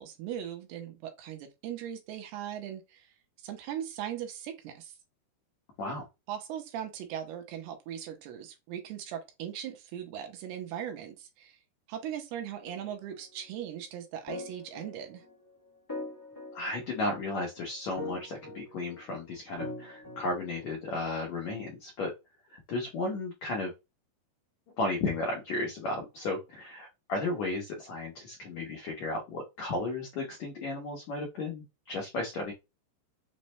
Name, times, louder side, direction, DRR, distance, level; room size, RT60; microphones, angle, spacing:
voice 1, 0.0-4.9 6.3-11.6 11.9-15.2, right 10 dB, 90° right, 2.8 m, -39 dB
sound 1, 12.6-13.2 14.3-15.3 15.9-17.3 18.0-19.0 19.6-20.7, left 2 dB, 15° left, 0.7 m, -42 dB
voice 2, 16.5-22.1 22.5-23.7 24.8-32.5, left 2 dB, 85° left, 1.5 m, -34 dB
6.2 x 2.1 x 3.1 m
omnidirectional pair, 4.6 m